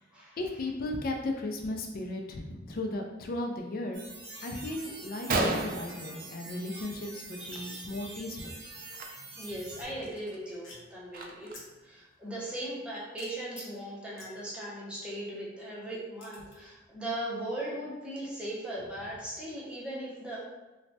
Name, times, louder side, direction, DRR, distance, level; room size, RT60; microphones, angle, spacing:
voice 1, 0.4-4.0 4.4-8.6, left 2 dB, 50° left, 3 dB, 0.4 m, -36 dB
sound 1, 3.9-9.8, right 3 dB, 65° right, 0.7 m, -46 dB
sound 2, 4.2-4.5 4.7-4.8 5.9-6.0 7.5-7.8 9.8-10.3 10.6-11.0 11.5-11.8 13.2-13.3 13.6-13.7 14.2-14.5 16.2-16.6, left 2 dB, 75° left, 0.7 m, -50 dB
Gunshot gunfire, 5.0-5.1 5.3-6.9 7.2-7.6 7.8-8.1 8.9-9.0 9.6-9.7 10.1-11.7, right 2 dB, 45° right, 0.3 m, -33 dB
voice 2, 7.4-8.5 9.4-11.5 11.8-20.5, right 1 dB, 5° right, -7 dB, 0.7 m, -39 dB
3.1 x 2.1 x 2.7 m, 1.1 s
head